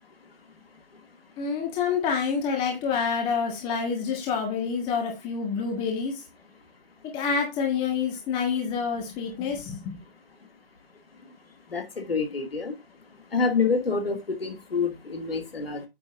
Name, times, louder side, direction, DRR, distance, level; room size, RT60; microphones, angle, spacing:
voice 1, 1.4-6.1 7.0-10.0, left 6 dB, 15° left, 1.5 m, -27 dB
voice 2, 11.7-12.7 13.3-15.8, left 4 dB, 75° left, 2.3 m, -27 dB
9.0 x 6.4 x 2.5 m
figure-of-eight pair, 145°, 30 cm